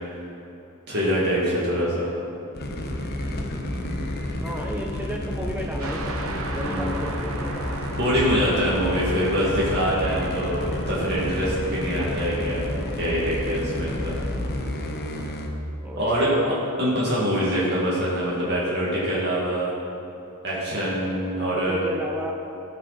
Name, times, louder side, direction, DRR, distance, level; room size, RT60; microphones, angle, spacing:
voice 1, 0.9-2.1 3.7-4.0 6.6-6.9 8.0-12.7 12.9-14.1 16.0-16.3 16.8-19.7 20.4-21.8, equal, 50° right, -7 dB, 2.2 m, -24 dB
voice 2, 1.9-2.4 4.3-8.0 15.8-16.8 21.3-22.3, equal, 10° right, -1 dB, 0.6 m, -34 dB
sound 1, 2.5-15.5, left 1 dB, 45° left, 1.0 m, -30 dB
sound 2, 5.8-15.2, right 3 dB, 65° right, 1.0 m, -38 dB
17.5 x 5.8 x 4.2 m, 2.9 s
head